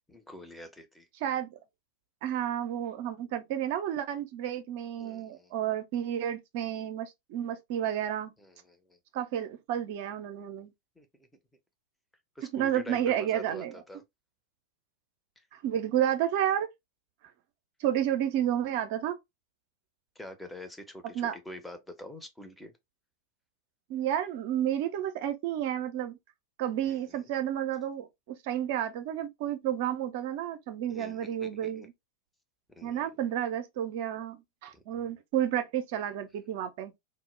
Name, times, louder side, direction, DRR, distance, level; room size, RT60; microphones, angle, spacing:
voice 1, 0.1-1.1 5.0-5.5 8.4-9.0 11.0-11.3 12.4-14.0 20.2-22.7 26.8-27.3 30.9-31.9 32.7-33.1 34.7-35.1, left 1 dB, 5° left, 0.6 m, -46 dB
voice 2, 2.2-8.3 9.1-10.7 12.5-13.8 15.5-16.7 17.8-19.2 21.1-21.3 23.9-26.2 26.6-31.9 32.8-36.9, right 10 dB, 50° right, 0.4 m, -31 dB
2.1 x 2.0 x 3.0 m
figure-of-eight pair, 90°, 0 cm